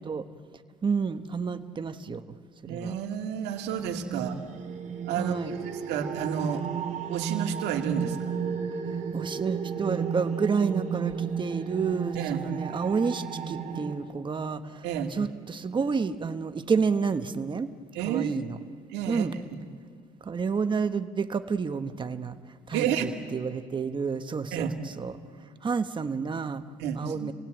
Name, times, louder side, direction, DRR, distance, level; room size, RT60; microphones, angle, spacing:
voice 1, 0.8-2.2 2.6-2.9 4.1-4.5 5.2-5.6 9.1-14.9 15.1-17.7 18.0-18.6 19.1-19.3 20.2-22.4 22.7-25.2 25.6-26.6 26.9-27.3, right 5 dB, 30° right, 9 dB, 1.2 m, -30 dB
voice 2, 2.7-4.4 5.0-6.7 7.1-8.3 12.2-12.5 14.8-15.1 17.9-19.3 22.7-23.1 24.5-24.8 26.8-27.3, right 8 dB, 85° right, 2 dB, 2.0 m, -31 dB
sound 1, 3.7-13.9, right 7 dB, 45° right, 3.2 m, -33 dB
29.0 x 17.5 x 9.0 m, 2.1 s
cardioid pair, 110°, 17 cm